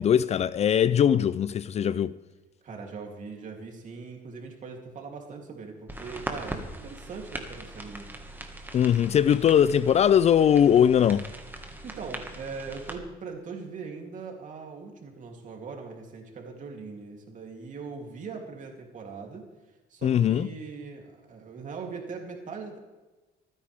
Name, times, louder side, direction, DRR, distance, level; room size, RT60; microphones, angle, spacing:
voice 1, 0.0-2.1 8.7-11.3 20.0-20.5, left 9 dB, 40° left, 0.4 m, -21 dB
voice 2, 2.6-8.1 11.8-22.8, right 4 dB, 50° right, 3.1 m, -41 dB
sound 1, 5.9-13.0, right 1 dB, 10° right, 1.7 m, -40 dB
25.5 x 9.9 x 3.5 m
cardioid pair, 110°, 17 cm